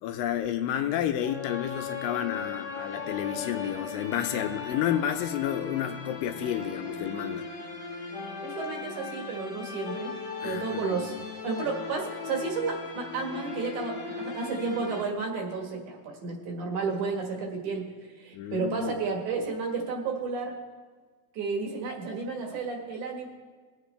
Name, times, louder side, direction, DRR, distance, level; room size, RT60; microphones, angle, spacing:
voice 1, 0.0-7.5 10.4-11.2 18.3-18.9, left 10 dB, 80° left, 7 dB, 2.2 m, -31 dB
sound 1, 1.2-15.0, left 5 dB, 50° left, 1.4 m, -38 dB
voice 2, 8.4-10.1 10.4-11.1 11.4-17.8 18.2-20.5 21.3-23.3, right 4 dB, 60° right, 1 dB, 2.8 m, -32 dB
20.5 x 8.0 x 3.3 m, 1.4 s
omnidirectional pair, 4.2 m